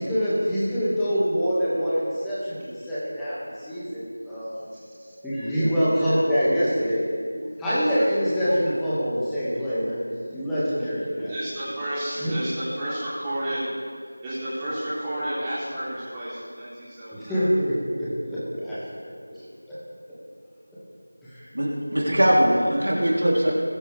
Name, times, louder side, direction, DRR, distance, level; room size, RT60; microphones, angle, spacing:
voice 1, 0.0-4.6 5.2-7.0 7.6-10.0 10.3-11.3 12.2-12.3 17.2-19.4 21.2-21.5, equal, 5° left, -13 dB, 2.2 m, -25 dB
voice 2, 4.7-5.4 5.9-6.2 7.3-7.5 8.5-8.6 11.3-13.6 14.2-17.5, right 1 dB, 10° right, -11 dB, 3.5 m, -32 dB
voice 3, 21.5-23.5, equal, 65° right, -5 dB, 3.7 m, -21 dB
21.5 x 11.0 x 3.6 m, 2.1 s
figure-of-eight pair, 170°, 0 cm